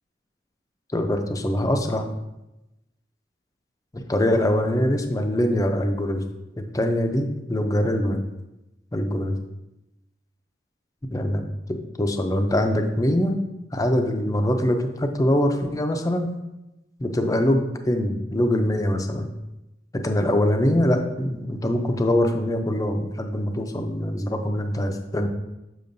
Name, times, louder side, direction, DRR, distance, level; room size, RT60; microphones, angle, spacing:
voice 1, 0.9-2.1 3.9-6.2 6.6-8.2 8.9-9.4 11.1-13.4 13.7-16.3 17.0-19.3 19.9-25.3, left 1 dB, 20° left, 6 dB, 0.5 m, -23 dB
6.8 x 6.2 x 2.6 m, 0.96 s
head